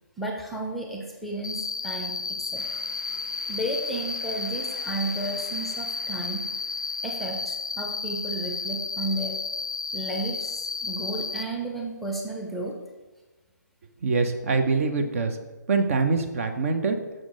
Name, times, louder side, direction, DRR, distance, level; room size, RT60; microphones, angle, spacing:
voice 1, 0.2-2.6 3.5-6.4 7.0-9.4 9.9-12.7, right 1 dB, ahead, 1 dB, 0.6 m, -33 dB
Cricket, 1.4-11.4, left 4 dB, 85° left, 0.5 m, -32 dB
sound 1, 2.5-7.7, right 1 dB, 65° right, 1.7 m, -49 dB
voice 2, 14.0-15.4 15.7-17.0, right 4 dB, 45° right, 7 dB, 0.7 m, -24 dB
6.4 x 6.1 x 3.7 m, 1.2 s
figure-of-eight pair, 140°, 10 cm